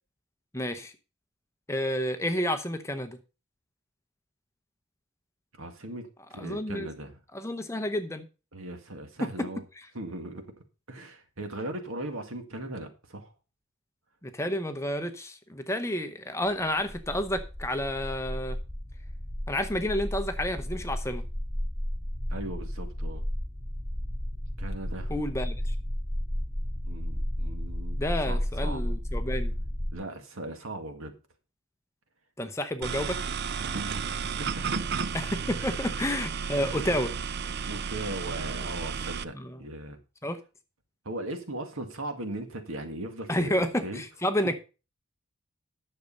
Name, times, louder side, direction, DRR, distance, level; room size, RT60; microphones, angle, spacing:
voice 1, 0.5-0.9 1.7-3.2 6.4-6.9 7.3-8.3 14.2-18.6 19.5-21.2 25.1-25.7 28.0-29.5 32.4-33.2 35.1-37.1 39.3-39.6 40.2-40.4 43.3-44.6, left 1 dB, 15° left, 0.8 m, -30 dB
voice 2, 5.6-7.1 8.5-9.6 9.9-10.5 10.9-13.3 22.3-23.2 24.6-25.1 26.8-28.9 29.9-31.1 33.6-34.8 35.6-35.7 37.7-40.0 41.1-44.0, right 1 dB, 75° right, 1.9 m, -38 dB
sound 1, 16.6-29.9, equal, 5° right, 1.8 m, -33 dB
sound 2, 32.8-39.2, right 6 dB, 50° right, 0.4 m, -33 dB
10.0 x 6.7 x 5.4 m
head